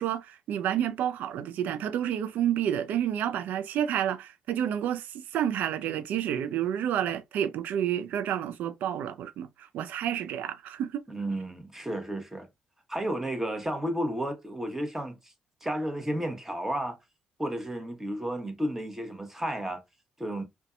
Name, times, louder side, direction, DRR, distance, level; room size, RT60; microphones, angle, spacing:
voice 1, 0.0-11.0, right 10 dB, 70° right, 0.4 m, -30 dB
voice 2, 11.1-12.5 12.9-15.3 15.6-17.0 17.4-19.8 20.2-20.4, right 1 dB, 10° right, 0.9 m, -32 dB
2.6 x 2.2 x 2.3 m
hypercardioid pair, 55°, 3 cm